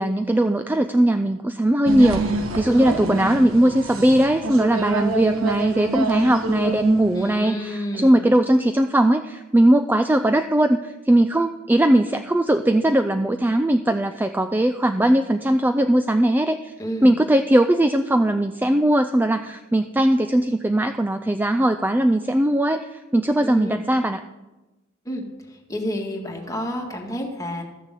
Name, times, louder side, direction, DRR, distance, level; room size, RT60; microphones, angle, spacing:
voice 1, 0.0-2.3 2.5-16.7 17.0-24.2, right 1 dB, 10° right, 7 dB, 0.3 m, -19 dB
sound 1, 1.9-7.3, right 3 dB, 70° right, 1.3 m, -27 dB
voice 2, 2.6-3.2 7.2-8.3 16.8-17.1 23.4-23.8 25.1-27.6, equal, 15° left, 1 dB, 1.8 m, -30 dB
13.5 x 6.8 x 7.6 m, 1.1 s
head